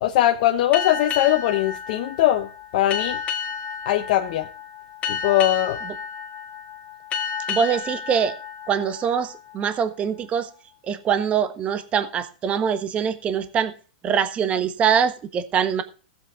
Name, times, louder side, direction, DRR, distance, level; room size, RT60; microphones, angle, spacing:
voice 1, 0.0-2.5 2.7-3.2 3.8-4.5 5.1-5.8, left 13 dB, 60° left, 3 dB, 1.1 m, -20 dB
sound 1, 0.7-9.9, left 7 dB, 30° left, 2.1 m, -32 dB
voice 2, 7.5-8.4 8.7-10.5 10.8-13.7 14.0-15.8, right 7 dB, 25° right, 10 dB, 1.3 m, -23 dB
16.5 x 8.0 x 3.6 m, 0.38 s
hypercardioid pair, 125°, 5 cm